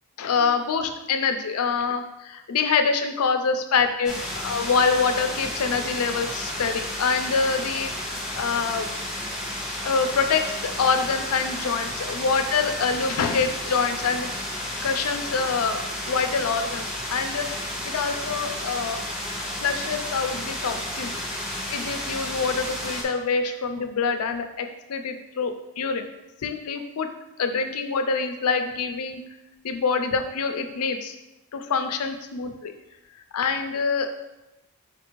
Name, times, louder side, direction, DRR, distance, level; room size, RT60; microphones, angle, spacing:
voice 1, 0.2-4.2 4.4-8.9 9.8-14.3 14.8-16.8 17.1-17.5 17.9-19.0 19.6-21.1 21.7-26.0 26.4-27.1 27.4-29.2 29.6-31.2 31.5-32.7 33.3-34.1, left 5 dB, 70° left, 7 dB, 0.5 m, -25 dB
sound 1, 4.0-23.0, left 1 dB, 5° right, 0.8 m, -32 dB
4.5 x 2.5 x 4.5 m, 0.94 s
head